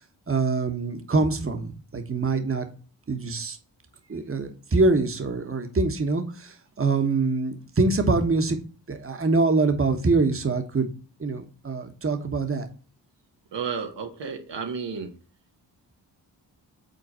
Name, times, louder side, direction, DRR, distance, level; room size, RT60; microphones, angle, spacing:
voice 1, 0.3-2.7 3.1-3.6 4.1-8.6 8.9-10.9 11.2-12.7, right 3 dB, 30° right, 6 dB, 1.2 m, -24 dB
voice 2, 13.5-15.1, right 6 dB, 75° right, 4 dB, 1.2 m, -32 dB
5.4 x 3.9 x 5.4 m, 0.38 s
cardioid pair, 45°, 43 cm